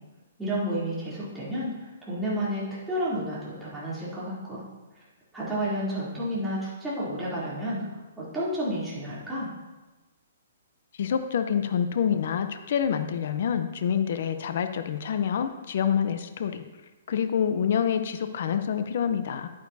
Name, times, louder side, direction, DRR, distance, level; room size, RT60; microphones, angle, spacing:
voice 1, 0.4-4.6 5.3-9.5, equal, 5° right, -10 dB, 3.1 m, -31 dB
voice 2, 11.0-16.6 17.1-19.5, left 8 dB, 55° left, 9 dB, 0.7 m, -27 dB
10.5 x 9.3 x 2.8 m, 1.1 s
hypercardioid pair, 160°, 0 cm